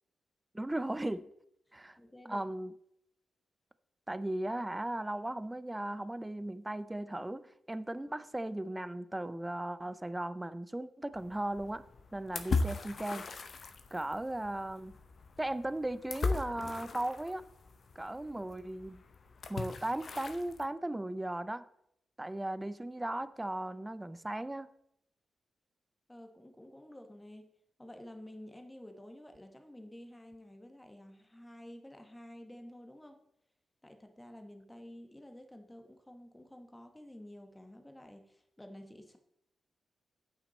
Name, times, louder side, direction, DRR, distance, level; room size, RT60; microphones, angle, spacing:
voice 1, 0.5-1.3 1.7-2.0 2.3-2.7 4.1-11.9 12.1-13.3 13.9-14.9 15.4-17.4 18.0-19.0 19.5-21.7 22.2-24.7, right 1 dB, 10° right, 15 dB, 0.4 m, -37 dB
voice 2, 2.0-2.5 26.1-27.5 27.8-33.2 33.8-39.2, left 1 dB, 10° left, 6 dB, 1.0 m, -51 dB
sound 1, 11.1-20.7, left 4 dB, 45° left, 0.7 m, -39 dB
8.9 x 8.3 x 4.2 m, 0.76 s
wide cardioid pair, 145°, 0 cm